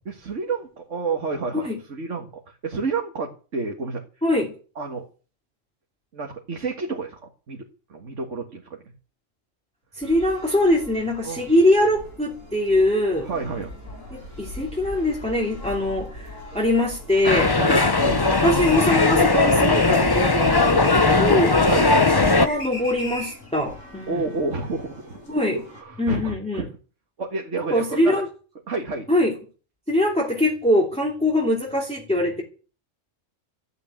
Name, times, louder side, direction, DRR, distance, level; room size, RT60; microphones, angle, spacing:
voice 1, 0.1-4.0 4.8-5.1 6.1-7.2 7.5-8.7 11.2-11.4 13.3-13.8 14.2-14.3 17.6-18.3 21.6-21.9 24.1-25.2 25.5-26.7 27.2-28.1 28.7-29.1, right 4 dB, 65° right, 2 dB, 2.2 m, -30 dB
voice 2, 4.2-4.5 9.9-13.3 14.1-17.5 18.3-21.5 22.4-24.2 25.3-25.6 26.0-26.7 27.7-28.3 29.1-29.3 29.9-32.4, left 1 dB, 5° left, -2 dB, 2.9 m, -22 dB
sound 1, 10.0-25.8, left 1 dB, 85° left, 5.3 m, -42 dB
sound 2, 17.2-22.5, left 3 dB, 20° left, 0.8 m, -18 dB
sound 3, 18.2-23.5, left 1 dB, 60° left, 5.0 m, -35 dB
14.0 x 8.8 x 9.2 m, 0.38 s
omnidirectional pair, 1.3 m